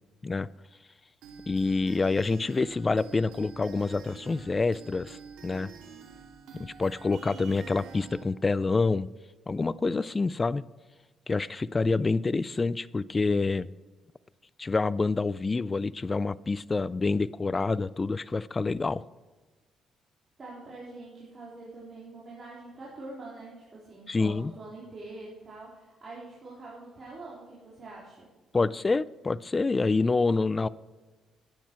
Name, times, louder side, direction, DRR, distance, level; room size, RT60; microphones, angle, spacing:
sound 1, 1.2-8.2, right 6 dB, 90° right, 2.2 m, -47 dB
voice 1, 1.5-5.2 5.4-5.7 6.6-9.1 9.5-10.6 11.3-13.7 14.6-19.0 24.1-24.5 28.5-30.7, left 3 dB, 25° left, 19 dB, 0.3 m, -27 dB
voice 2, 20.4-28.3, right 2 dB, 35° right, -6 dB, 3.8 m, -45 dB
12.0 x 9.3 x 4.6 m, 1.3 s
cardioid pair, 90°, 0 cm